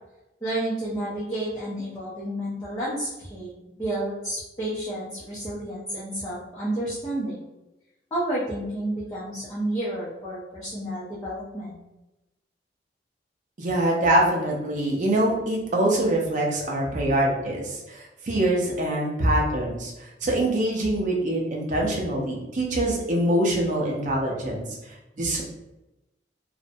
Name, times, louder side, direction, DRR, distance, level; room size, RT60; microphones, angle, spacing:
voice 1, 0.4-7.4 8.1-11.8, right 1 dB, 20° left, -9 dB, 0.5 m, -31 dB
voice 2, 13.6-19.9 20.2-24.7 25.2-25.4, right 1 dB, 45° right, -1 dB, 0.5 m, -24 dB
2.5 x 2.0 x 2.6 m, 0.96 s
head